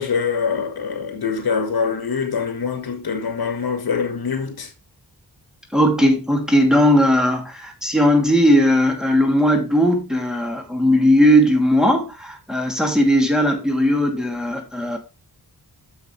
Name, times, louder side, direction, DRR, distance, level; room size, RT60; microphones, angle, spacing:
voice 1, 0.0-4.7, left 6 dB, 70° left, 1.7 m, -24 dB
voice 2, 5.7-15.0, equal, ahead, 2.4 m, -17 dB
9.8 x 7.0 x 3.2 m
wide cardioid pair, 100°, 39 cm